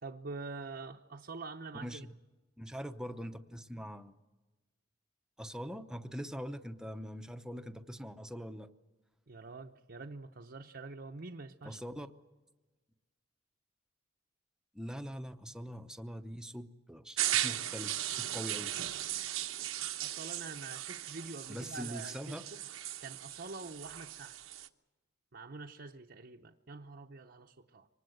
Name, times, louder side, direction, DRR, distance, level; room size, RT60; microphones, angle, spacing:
voice 1, 0.0-2.1 9.3-11.8 20.0-22.6 23.0-24.4 25.3-27.9, right 3 dB, 50° right, 2 dB, 0.8 m, -46 dB
voice 2, 1.7-2.1 2.6-4.2 5.4-8.7 11.6-12.1 14.7-18.7 21.5-22.4, equal, 5° right, 7 dB, 0.8 m, -43 dB
sound 1, 17.2-24.7, right 12 dB, 85° right, 1.0 m, -37 dB
25.0 x 19.5 x 7.9 m, 1.2 s
head